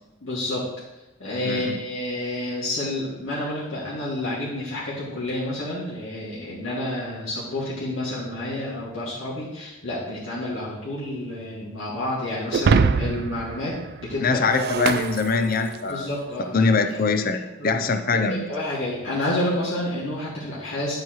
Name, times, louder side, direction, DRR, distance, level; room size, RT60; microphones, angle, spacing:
voice 1, 0.2-0.7 1.2-13.7 14.0-14.4 15.9-16.6 16.9-17.0 17.3-17.7 18.1-20.9, left 1 dB, 85° left, -8 dB, 2.1 m, -29 dB
voice 2, 1.5-1.8 14.2-16.1 16.5-18.5, left 4 dB, 45° left, 8 dB, 0.5 m, -23 dB
Shatter, 12.5-16.0, right 5 dB, 55° right, 0.3 m, -24 dB
9.5 x 7.5 x 3.1 m, 0.99 s
head